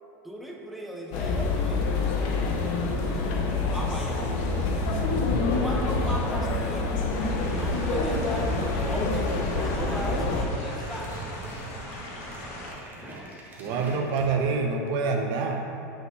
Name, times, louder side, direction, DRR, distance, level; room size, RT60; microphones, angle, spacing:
voice 1, 0.2-1.9 3.7-4.2 5.5-8.5 8.9-11.2, equal, ahead, -1 dB, 0.7 m, -37 dB
sound 1, 1.1-10.4, left 3 dB, 55° left, 1.1 m, -26 dB
sound 2, 7.1-12.7, left 1 dB, 75° left, 1.7 m, -39 dB
sound 3, 8.9-14.4, right 2 dB, 20° right, 1.5 m, -42 dB
voice 2, 13.6-15.6, right 4 dB, 50° right, 3 dB, 0.9 m, -26 dB
6.0 x 5.3 x 5.7 m, 2.7 s
supercardioid pair, 130°, 9 cm